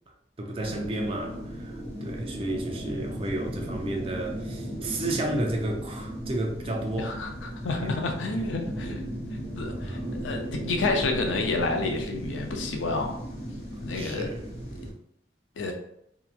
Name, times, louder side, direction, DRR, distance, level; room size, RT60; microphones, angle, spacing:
voice 1, 0.4-7.1 7.8-7.9 8.3-8.4 9.7-10.3 13.9-14.7, right 1 dB, 30° right, 1 dB, 0.4 m, -32 dB
sound 1, 0.6-14.9, equal, 35° left, 0.7 m, -36 dB
voice 2, 7.0-9.0 9.6-10.0 10.2-13.2 13.8-14.3 15.6-15.7, left 3 dB, 90° left, 3 dB, 0.5 m, -29 dB
2.8 x 2.3 x 2.4 m, 0.78 s
head